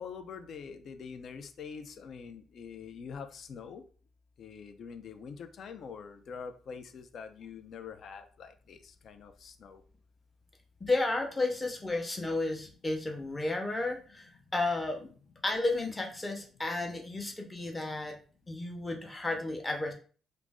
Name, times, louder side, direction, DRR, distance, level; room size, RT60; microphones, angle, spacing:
voice 1, 0.0-3.8 4.4-9.8, left 6 dB, 60° left, 8 dB, 0.4 m, -45 dB
voice 2, 10.8-15.1 15.4-18.1 18.5-19.9, left 2 dB, 20° left, 2 dB, 0.7 m, -32 dB
2.5 x 2.0 x 3.4 m, 0.40 s
cardioid pair, 90°, 0 cm